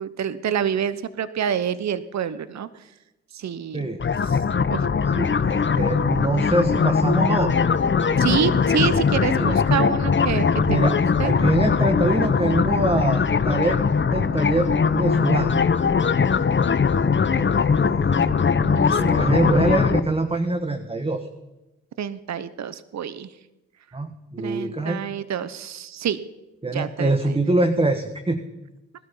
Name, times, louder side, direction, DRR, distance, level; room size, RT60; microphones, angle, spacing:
voice 1, 0.0-2.7 3.3-3.9 4.3-4.4 4.7-4.9 8.2-11.3 18.6-19.2 22.0-23.3 24.4-26.2 26.7-27.4, right 8 dB, 55° right, 14 dB, 1.0 m, -27 dB
sound 1, 4.0-20.0, left 5 dB, 35° left, 1.0 m, -21 dB
voice 2, 5.1-7.7 8.1-8.6 9.2-9.6 10.6-11.0 11.2-13.8 14.1-15.7 16.9-17.0 17.3-18.4 18.9-21.3 23.9-25.0 26.6-28.4, right 2 dB, 15° right, 6 dB, 1.5 m, -25 dB
20.0 x 12.5 x 5.6 m, 0.99 s
supercardioid pair, 50°, 33 cm